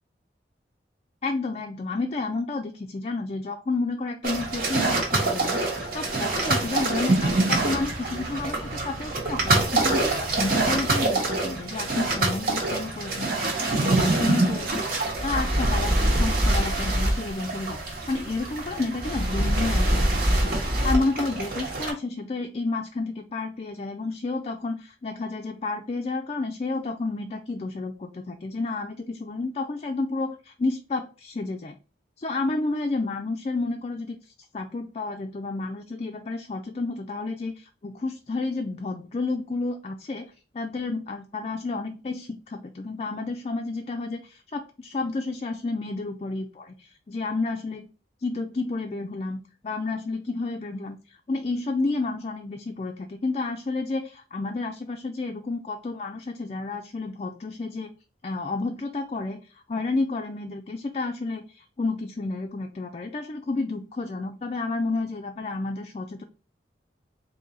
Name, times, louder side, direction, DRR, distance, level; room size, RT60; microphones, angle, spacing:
voice 1, 1.2-31.8 32.2-47.9 48.2-57.9 58.2-66.2, left 3 dB, 35° left, 4 dB, 0.3 m, -31 dB
sound 1, 4.2-21.9, right 2 dB, 50° right, 1.3 m, -25 dB
3.8 x 2.7 x 4.0 m, 0.35 s
head